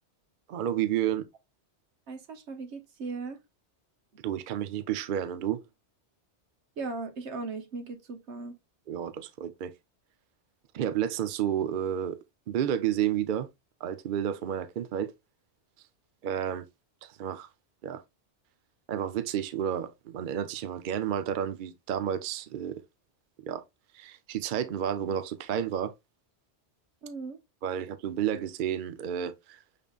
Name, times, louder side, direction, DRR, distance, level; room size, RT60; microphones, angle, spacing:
voice 1, 0.5-1.3 4.2-5.6 8.9-9.7 10.7-12.2 12.5-13.5 13.8-15.1 16.2-16.7 17.0-17.5 17.8-18.0 18.9-22.8 23.4-23.6 23.9-25.9 27.6-29.6, right 10 dB, 60° right, 0.6 m, -31 dB
voice 2, 2.1-3.4 6.8-8.6 27.0-27.4, right 3 dB, 75° right, 1.2 m, -38 dB
6.6 x 3.5 x 2.3 m
omnidirectional pair, 1.2 m